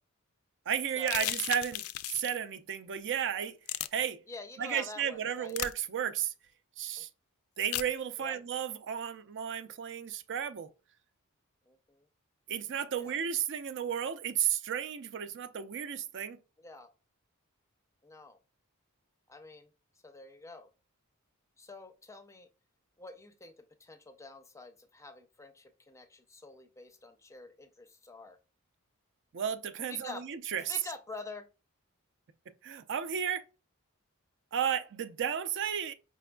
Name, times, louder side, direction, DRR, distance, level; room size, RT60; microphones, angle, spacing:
voice 1, 0.7-1.8 2.1-3.6 3.9-4.2 4.6-6.3 6.8-7.1 7.6-10.7 12.5-16.4 29.3-30.6 32.6-33.4 34.5-35.9, right 8 dB, 55° right, 0.5 m, -33 dB
sound 1, 1.0-2.4 3.7-3.9 5.5-5.7 7.7-7.9, left 14 dB, 70° left, 0.3 m, -34 dB
voice 2, 4.3-5.6 7.0-7.1 8.2-8.4 11.7-12.1 13.0-13.2 16.6-16.9 18.0-18.4 19.3-19.7 20.0-20.7 21.6-22.5 23.0-23.5 23.8-28.4 29.9-30.2 30.7-31.5, left 3 dB, 15° left, 0.5 m, -47 dB
5.1 x 3.4 x 2.2 m
head